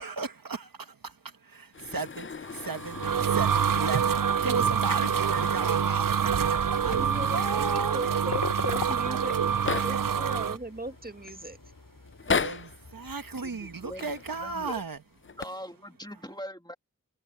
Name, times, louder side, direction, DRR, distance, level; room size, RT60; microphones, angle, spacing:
voice 1, 0.0-8.6 12.2-15.0 15.3-15.4, right 4 dB, 90° right, 1.4 m, -36 dB
sound 1, 1.7-4.2 4.7-5.8 6.0-6.1 6.6-8.1 8.9-9.0 9.2-10.2 10.8-11.3 12.1-12.8 13.9-14.5 15.2-15.4, left 5 dB, 35° left, 0.5 m, -36 dB
sound 2, 2.6-10.6, right 7 dB, 70° right, 0.6 m, -26 dB
sound 3, 3.2-14.9, left 3 dB, 75° left, 3.0 m, -43 dB
voice 2, 6.9-11.6, right 1 dB, 25° right, 1.7 m, -38 dB
voice 3, 13.4-14.1 14.4-14.7 15.4-16.7, equal, 10° left, 2.4 m, -41 dB
wide cardioid pair, 40°, 33 cm